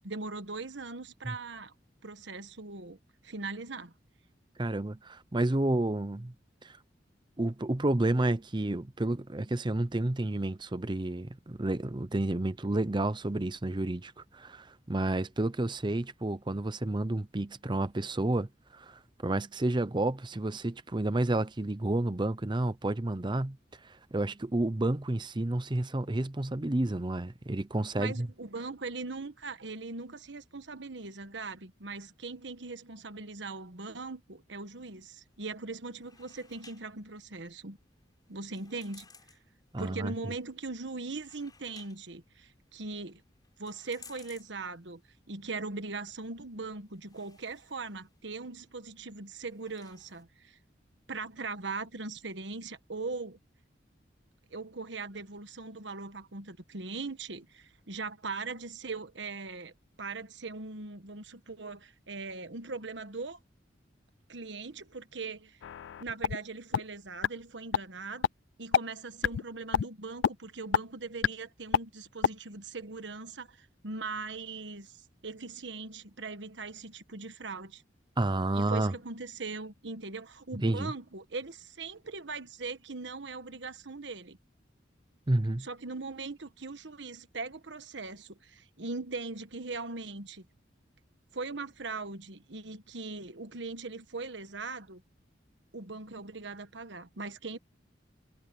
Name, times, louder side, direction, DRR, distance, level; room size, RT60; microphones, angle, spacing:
voice 1, 0.0-1.7 2.0-3.0 3.2-3.9 28.0-37.8 38.3-39.1 39.8-43.2 43.6-45.0 45.3-50.6 51.1-53.4 54.5-59.7 60.0-63.4 64.3-65.6 66.0-68.3 68.6-77.8 78.5-84.4 85.6-90.5 91.3-95.0 95.7-97.6, right 3 dB, 70° right, 1.4 m, -40 dB
voice 2, 4.6-6.3 6.6-6.8 7.4-23.6 24.1-28.3 39.7-40.1 78.2-78.9 80.6-80.9 85.3-85.7, right 2 dB, 25° right, 0.7 m, -30 dB
sound 1, 35.2-50.2, left 5 dB, 20° left, 5.2 m, -60 dB
sound 2, 65.6-66.4 66.7-66.8 67.2-67.3 67.7-67.8 68.2-68.3 68.7-68.8 69.2-69.4 69.7-69.9 70.2-70.3 70.7-70.8 71.2-71.3 71.7-71.8 72.2-72.3, left 8 dB, 75° left, 0.3 m, -26 dB
head